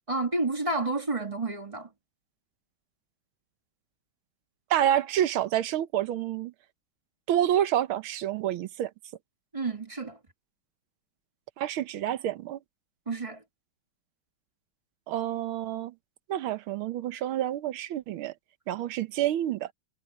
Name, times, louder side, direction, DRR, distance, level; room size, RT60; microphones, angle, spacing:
voice 1, 0.1-1.9 9.5-10.2 13.1-13.4, right 2 dB, 15° right, 1.5 m, -30 dB
voice 2, 4.7-6.5 7.3-8.9 11.6-12.6 15.1-15.9 16.3-18.3 18.7-19.7, right 11 dB, 80° right, 1.7 m, -28 dB
omnidirectional pair, 2.2 m